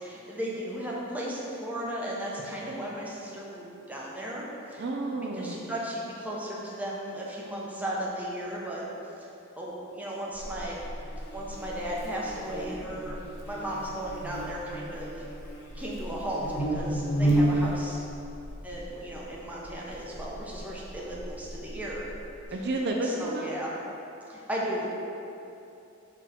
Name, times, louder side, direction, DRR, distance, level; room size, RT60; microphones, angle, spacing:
voice 1, 0.0-4.8 5.2-8.8 9.2-9.3 9.6-10.8 11.3-13.2 13.4-15.2 15.7-18.0 18.6-22.1 22.6-22.7 23.0-23.7 24.3-24.9, right 1 dB, 10° right, -5 dB, 0.9 m, -35 dB
voice 2, 4.8-5.7 22.5-23.6, right 2 dB, 55° right, 1 dB, 0.5 m, -31 dB
Buzz, 10.3-22.5, right 1 dB, 60° left, 0.9 m, -33 dB
6.7 x 3.2 x 5.0 m, 2.7 s
head